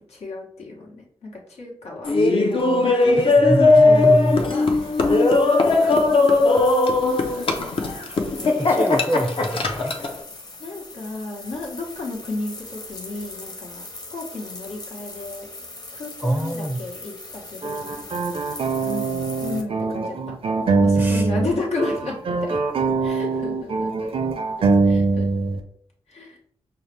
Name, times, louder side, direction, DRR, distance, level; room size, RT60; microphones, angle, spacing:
voice 1, 0.1-3.5 3.8-6.2 8.4-8.8 10.6-13.8 14.1-15.5 15.9-18.2 18.8-20.1 20.7-22.6 23.0-24.1 24.8-25.3 26.1-26.4, left 3 dB, 90° left, -2 dB, 1.2 m, -33 dB
Laughter, 2.0-10.1, left 3 dB, 60° left, 0.6 m, -18 dB
voice 2, 3.4-4.5 8.6-9.9 16.2-16.8 20.9-21.3, right 1 dB, 10° right, 5 dB, 0.5 m, -25 dB
sound 1, 3.9-19.6, left 2 dB, 40° left, 1.0 m, -41 dB
sound 2, 17.6-21.5 21.8-25.6, right 3 dB, 65° right, 0.5 m, -22 dB
5.5 x 2.0 x 3.2 m, 0.64 s
cardioid pair, 55°, 10 cm